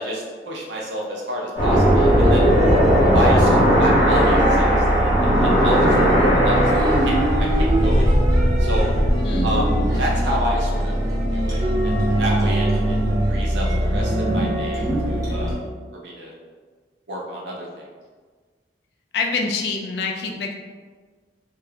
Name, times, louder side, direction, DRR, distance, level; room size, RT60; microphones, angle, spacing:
voice 1, 0.0-2.5 3.1-4.8 5.2-5.9 6.4-6.7 7.0-7.2 7.6-8.9 9.4-9.7 10.0-10.9 11.3-12.9 13.3-15.5 16.0-16.3 17.1-17.7, equal, 75° right, -3 dB, 0.7 m, -29 dB
sound 1, 1.6-9.2, equal, 30° left, 0.9 m, -18 dB
sound 2, 1.6-15.5, right 1 dB, 20° right, 0.7 m, -21 dB
voice 2, 9.2-9.7 19.1-20.5, left 4 dB, 65° left, 2 dB, 0.4 m, -26 dB
2.4 x 2.2 x 3.4 m, 1.5 s
head